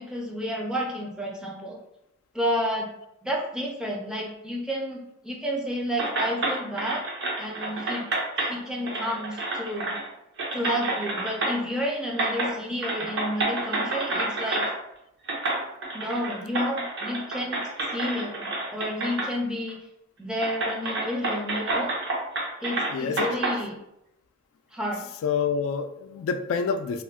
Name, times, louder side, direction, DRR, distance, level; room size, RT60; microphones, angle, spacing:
voice 1, 0.0-1.8 2.3-2.9 3.2-7.0 7.4-8.0 8.4-9.9 10.5-14.6 15.9-17.6 17.9-19.8 20.2-21.9 22.6-23.8 24.7-25.1, equal, 5° right, -2 dB, 0.4 m, -31 dB
sound 1, 6.0-8.5 8.8-10.1 10.4-11.8 12.1-12.5 12.8-14.7 15.3-19.3 19.7-19.8 20.4-23.6, right 2 dB, 60° right, 0.6 m, -29 dB
voice 2, 22.9-23.3 25.2-27.0, left 6 dB, 85° left, 9 dB, 0.3 m, -27 dB
2.4 x 2.1 x 3.5 m, 0.83 s
head